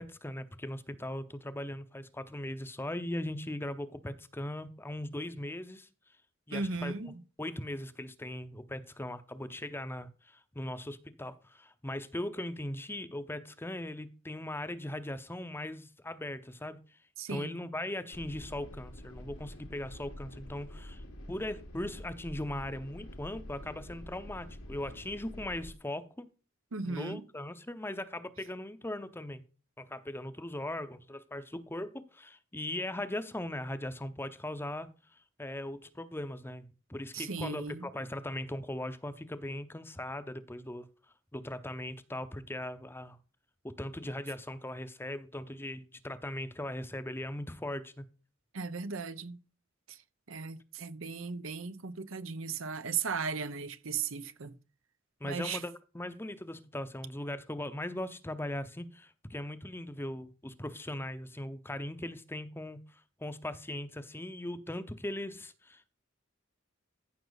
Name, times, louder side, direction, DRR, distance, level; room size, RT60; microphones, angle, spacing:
voice 1, 0.0-5.9 6.5-6.9 7.4-17.0 17.3-21.0 21.3-26.3 26.8-29.4 29.8-34.9 35.4-40.9 41.3-43.2 43.6-48.0 55.2-65.9, left 1 dB, 10° left, 0.8 m, -39 dB
voice 2, 6.5-7.1 17.2-17.5 26.7-27.2 37.1-37.9 48.5-49.4 49.9-50.0 50.3-54.5 55.2-55.6, right 5 dB, 75° right, 0.9 m, -36 dB
sound 1, 18.1-25.7, left 1 dB, 85° left, 2.3 m, -47 dB
14.5 x 6.0 x 4.0 m
head